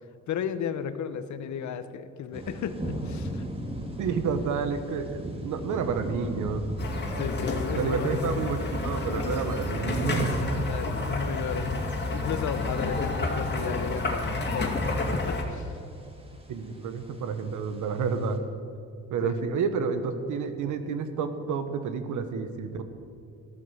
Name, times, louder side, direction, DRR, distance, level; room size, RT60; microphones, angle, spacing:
voice 1, 0.3-3.5 7.1-8.4 10.6-15.8 19.2-19.4, left 8 dB, 70° left, 12 dB, 1.0 m, -34 dB
sound 1, 2.3-18.4, right 1 dB, 20° right, 2.2 m, -40 dB
voice 2, 4.0-6.6 7.7-10.3 16.5-18.4 19.1-22.8, right 5 dB, 80° right, 9 dB, 1.3 m, -30 dB
sound 2, 6.8-15.4, left 2 dB, 35° left, 2.4 m, -30 dB
13.5 x 12.0 x 5.8 m, 2.5 s
cardioid pair, 90°, 30 cm